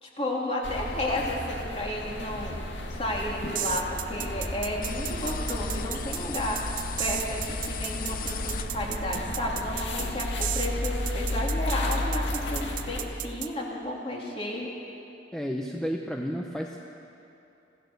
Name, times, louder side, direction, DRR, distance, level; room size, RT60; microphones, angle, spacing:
voice 1, 0.0-2.6 2.9-14.7, left 1 dB, 30° left, -2 dB, 3.1 m, -32 dB
sound 1, 0.6-13.0, left 1 dB, 75° left, 2.2 m, -33 dB
sound 2, 3.5-13.5, right 13 dB, 45° right, 0.7 m, -34 dB
sound 3, 4.8-9.2, left 8 dB, 45° left, 0.7 m, -39 dB
voice 2, 15.3-16.8, equal, 5° left, 0 dB, 0.8 m, -32 dB
26.0 x 15.5 x 6.9 m, 2.8 s
head